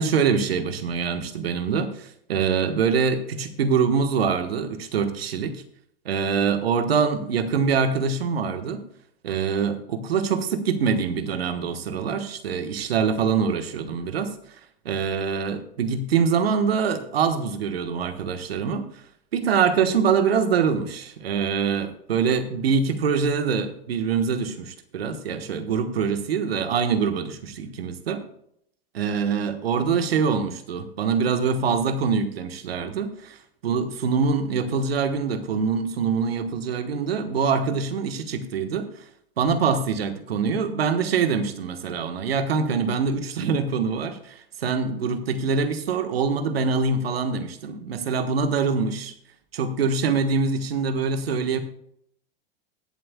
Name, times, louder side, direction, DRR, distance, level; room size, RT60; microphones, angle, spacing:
voice 1, 0.0-5.6 6.0-8.8 9.2-14.4 14.8-19.0 19.3-28.2 28.9-39.0 39.4-49.1 49.5-51.6, right 5 dB, 80° right, 8 dB, 1.3 m, -24 dB
21.0 x 7.8 x 2.3 m, 0.70 s
hypercardioid pair, 100°, 30 cm